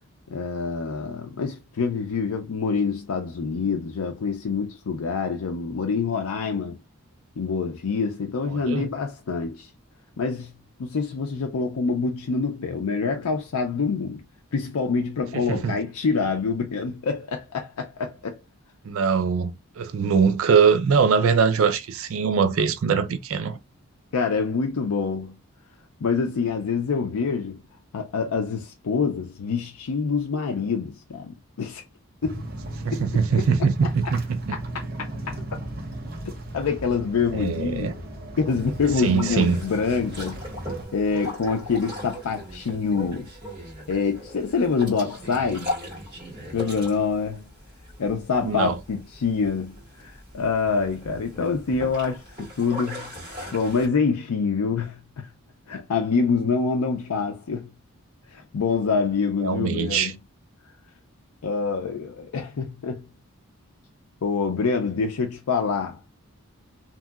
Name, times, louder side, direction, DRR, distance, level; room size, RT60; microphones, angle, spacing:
voice 1, 0.3-6.8 7.4-9.7 10.2-10.5 10.8-14.2 14.5-18.4 24.1-25.4 26.0-27.6 27.9-31.8 32.2-32.4 32.9-33.0 33.4-33.5 33.8-33.9 34.5-34.6 35.0-35.4 36.5-37.9 38.4-40.4 40.9-43.3 43.9-45.7 46.5-47.5 48.0-53.1 53.5-55.3 55.7-57.7 58.3-60.1 61.4-63.0 64.2-66.0, left 5 dB, 85° left, 0.5 m, -26 dB
voice 2, 8.5-8.9 15.3-15.8 18.8-23.6 32.8-34.5 37.3-37.9 39.0-39.6 48.4-48.8 59.4-60.1, right 6 dB, 70° right, 0.4 m, -22 dB
sound 1, 32.2-40.9, right 1 dB, 45° right, 0.8 m, -35 dB
Boat Water vehicle, 38.5-53.9, equal, 20° right, 1.9 m, -39 dB
2.9 x 2.7 x 2.3 m
head